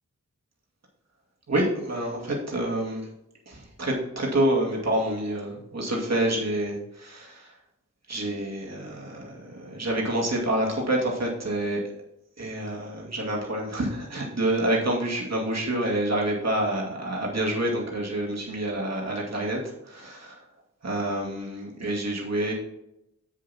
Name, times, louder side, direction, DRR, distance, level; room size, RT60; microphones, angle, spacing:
voice 1, 1.5-3.1 3.5-7.6 8.1-11.8 12.4-20.4 20.8-22.5, right 1 dB, 55° right, -2 dB, 2.3 m, -28 dB
7.8 x 7.4 x 4.3 m, 0.85 s
wide cardioid pair, 65°, 31 cm